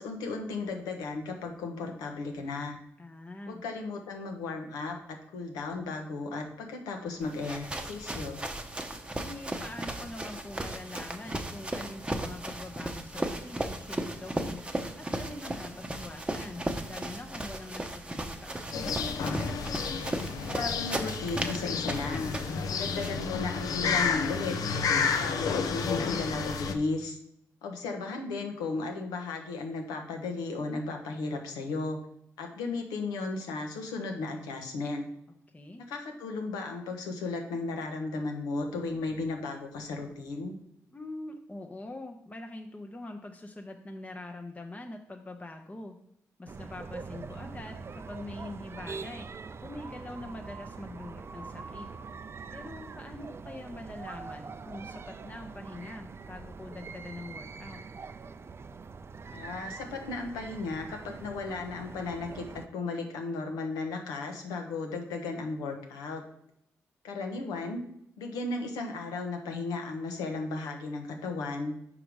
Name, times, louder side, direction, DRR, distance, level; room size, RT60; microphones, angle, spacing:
voice 1, 0.0-2.8 3.5-8.4 20.4-22.4 22.8-24.6 25.1-27.2 27.6-32.0 32.4-35.1 35.8-40.5 59.3-66.2 67.0-67.8 68.2-71.7, left 3 dB, 85° left, 3 dB, 1.0 m, -35 dB
voice 2, 3.0-3.6 9.2-19.0 35.5-35.8 40.9-46.0 46.4-49.3 49.6-51.9 52.5-57.8, left 2 dB, 20° left, 3 dB, 0.7 m, -44 dB
sound 1, 7.2-23.2, right 1 dB, 15° right, 0.8 m, -36 dB
sound 2, 18.7-26.7, left 5 dB, 70° left, 0.6 m, -31 dB
sound 3, 46.5-62.7, right 4 dB, 40° right, 0.4 m, -43 dB
5.3 x 4.9 x 4.7 m, 0.74 s
supercardioid pair, 50°, 7 cm